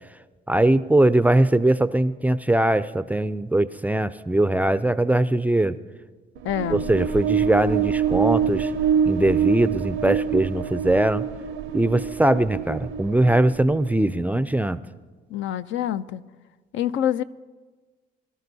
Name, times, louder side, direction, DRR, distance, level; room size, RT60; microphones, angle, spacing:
voice 1, 0.5-5.8 6.7-8.7 9.1-11.2 11.7-14.8, right 1 dB, 10° right, 14 dB, 0.3 m, -21 dB
voice 2, 6.4-6.8 15.3-16.2 16.7-17.2, left 10 dB, 75° left, 13 dB, 0.4 m, -26 dB
sound 1, 6.4-14.1, right 8 dB, 75° right, 0.5 m, -25 dB
22.5 x 12.5 x 2.7 m, 1.4 s
cardioid pair, 90°, 20 cm